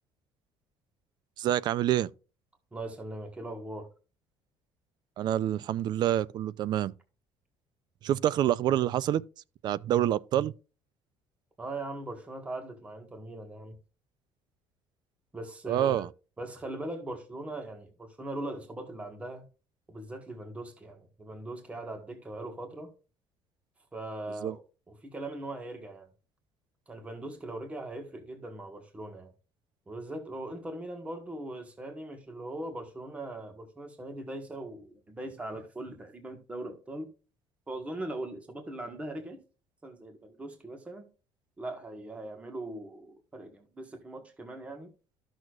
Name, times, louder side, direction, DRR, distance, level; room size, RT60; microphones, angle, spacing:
voice 1, 1.4-2.1 5.2-6.9 8.0-9.2 9.6-10.5 15.7-16.1 24.4-24.6, right 12 dB, 50° right, 0.4 m, -27 dB
voice 2, 2.7-3.9 11.6-13.8 15.3-16.1 16.4-19.4 19.9-22.9 23.9-24.6 24.9-26.1 26.9-29.3 29.9-37.1 37.7-39.4 39.8-41.1 41.6-44.9, right 1 dB, 15° right, 1.4 m, -40 dB
13.5 x 6.3 x 2.4 m
cardioid pair, 160°, 10 cm